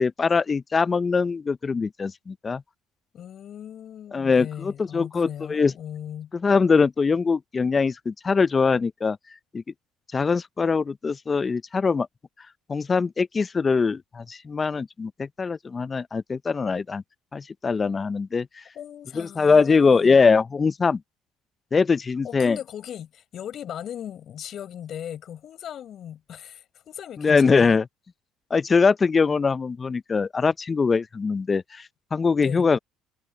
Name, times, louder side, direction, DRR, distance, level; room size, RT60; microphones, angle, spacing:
voice 1, 0.0-2.6 4.1-5.7 6.3-9.2 9.5-9.6 10.1-12.1 12.7-17.0 17.3-18.6 19.1-21.0 21.7-22.6 27.2-27.9 28.5-32.8, left 5 dB, 30° left, 0.5 m, -22 dB
voice 2, 3.1-6.3 18.7-20.2 22.2-27.8 32.4-32.7, left 10 dB, 55° left, 5.2 m, -38 dB
supercardioid pair, 70°, 0 cm